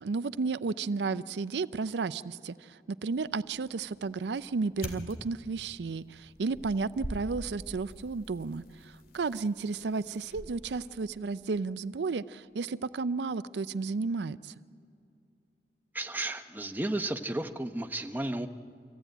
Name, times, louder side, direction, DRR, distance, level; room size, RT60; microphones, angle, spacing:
voice 1, 0.0-14.5, right 4 dB, 75° right, 15 dB, 0.5 m, -33 dB
sound 1, 3.1-11.2, left 1 dB, 55° left, 2.2 m, -46 dB
voice 2, 15.9-18.5, right 1 dB, 10° right, 6 dB, 0.8 m, -33 dB
25.5 x 15.5 x 9.0 m, 2.6 s
head